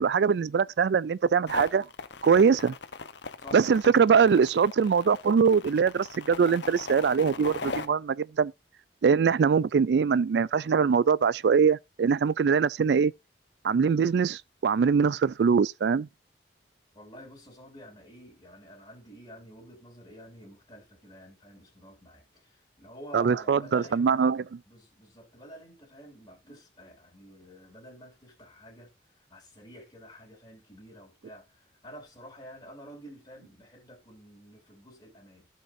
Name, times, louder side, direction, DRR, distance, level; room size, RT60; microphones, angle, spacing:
voice 1, 0.0-1.9 2.2-2.7 3.5-8.5 9.0-13.1 13.6-16.1 23.1-24.4, right 6 dB, 70° right, 0.4 m, -23 dB
sound 1, 1.5-7.8, left 4 dB, 90° left, 1.1 m, -38 dB
voice 2, 16.9-24.3 24.7-28.9 29.3-35.5, equal, 25° left, 3.4 m, -49 dB
15.0 x 5.4 x 2.7 m
head